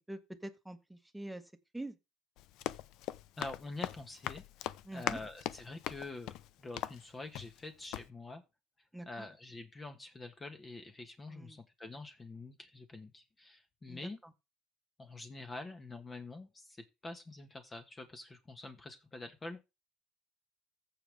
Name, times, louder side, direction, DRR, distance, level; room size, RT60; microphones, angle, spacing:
voice 1, 0.1-1.4 1.7-2.0 4.8-5.2 8.9-9.3 11.3-11.6 13.9-14.3, right 1 dB, 5° right, 1.4 m, -45 dB
Run, 2.4-7.7 7.9-8.1, left 13 dB, 70° left, 0.6 m, -41 dB
voice 2, 3.4-6.3 6.6-8.4 9.0-14.2 15.0-19.6, left 2 dB, 20° left, 1.4 m, -46 dB
15.0 x 5.1 x 3.5 m
cardioid pair, 115°, 0 cm